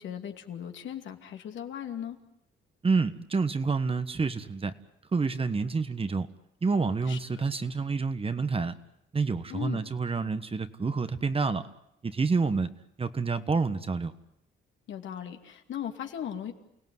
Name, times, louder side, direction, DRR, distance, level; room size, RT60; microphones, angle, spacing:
voice 1, 0.0-2.2 7.1-7.2 9.5-9.8 14.9-16.5, left 9 dB, 70° left, 5 dB, 2.6 m, -37 dB
voice 2, 2.8-4.7 5.1-6.3 6.6-8.7 9.1-11.6 12.0-12.7 13.0-14.1, right 4 dB, 30° right, 11 dB, 1.4 m, -28 dB
29.5 x 17.5 x 9.5 m, 0.81 s
cardioid pair, 90°, 20 cm